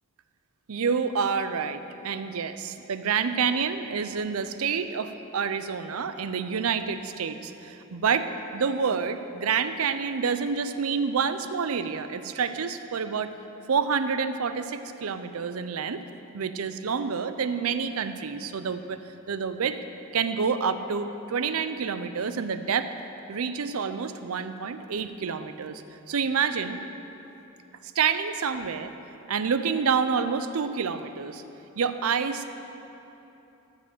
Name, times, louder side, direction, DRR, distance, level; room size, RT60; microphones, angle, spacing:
voice 1, 0.7-13.3 13.7-16.0 16.3-19.0 19.3-19.8 20.1-22.9 23.3-25.8 26.1-26.8 28.0-28.9 29.3-31.4 31.8-32.5, right 6 dB, 80° right, 11 dB, 0.5 m, -28 dB
13.5 x 5.2 x 7.7 m, 3.0 s
head